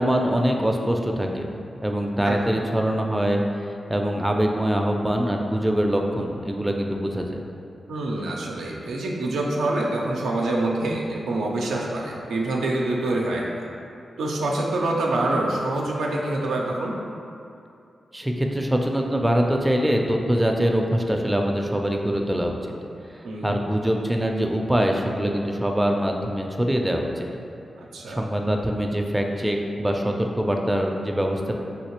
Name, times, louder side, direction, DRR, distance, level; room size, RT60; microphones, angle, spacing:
voice 1, 0.0-1.5 1.8-7.4 18.1-22.6 23.1-27.3 28.1-31.5, equal, 15° right, 2 dB, 0.4 m, -23 dB
voice 2, 7.9-13.7 14.2-16.9 23.2-23.6 27.8-28.2, right 2 dB, 85° right, -2 dB, 0.4 m, -26 dB
3.2 x 2.7 x 2.9 m, 2.5 s
supercardioid pair, 40°, 0 cm